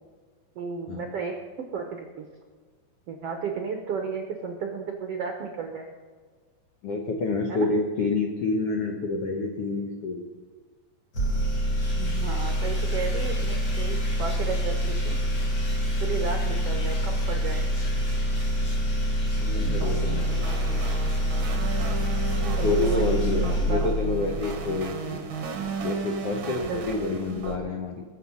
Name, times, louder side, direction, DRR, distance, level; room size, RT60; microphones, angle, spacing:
voice 1, 0.5-1.3 1.7-2.3 3.1-5.9 7.5-7.7 11.9-15.2 16.0-17.7 22.3-23.8 26.4-26.9, right 5 dB, 75° right, 3 dB, 1.3 m, -33 dB
voice 2, 6.8-10.3 19.2-20.3 22.6-25.2 25.8-28.0, left 3 dB, 70° left, 1 dB, 1.4 m, -28 dB
sound 1, 11.1-24.5, equal, 35° left, 2.2 m, -26 dB
sound 2, 19.6-27.6, right 5 dB, 60° right, 1.3 m, -34 dB
21.0 x 7.4 x 5.5 m, 1.5 s
omnidirectional pair, 4.3 m